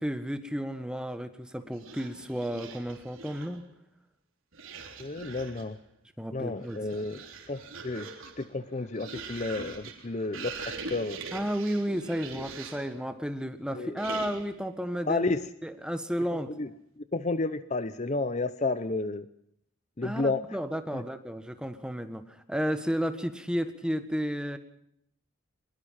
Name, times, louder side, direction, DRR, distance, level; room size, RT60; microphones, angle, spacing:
voice 1, 0.0-3.6 6.2-6.8 11.3-15.3 15.6-16.5 20.0-24.6, equal, 5° right, 8 dB, 1.5 m, -32 dB
sound 1, 1.7-3.6 4.5-5.8 6.5-13.0 14.0-14.6, right 4 dB, 85° right, 3.6 m, -43 dB
voice 2, 5.0-5.8 6.3-8.1 8.4-11.2 13.7-14.0 15.1-15.5 16.5-16.7 17.0-19.3 20.0-20.4 20.9-21.0, left 3 dB, 35° left, 13 dB, 0.7 m, -31 dB
22.0 x 21.5 x 5.7 m, 0.72 s
head